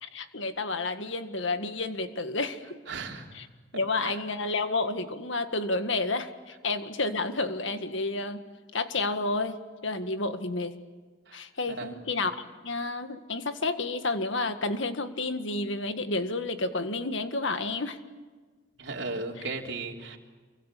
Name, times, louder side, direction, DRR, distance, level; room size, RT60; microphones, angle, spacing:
voice 1, 0.0-2.6 3.3-3.5 3.7-8.4 8.7-10.7 11.3-18.0 19.4-19.5, left 3 dB, 70° left, 9 dB, 1.8 m, -30 dB
voice 2, 2.9-3.3 4.0-4.2 11.3-11.4 11.8-11.9 18.8-20.2, right 3 dB, 60° right, 0 dB, 3.6 m, -36 dB
28.0 x 23.5 x 8.5 m, 1.4 s
head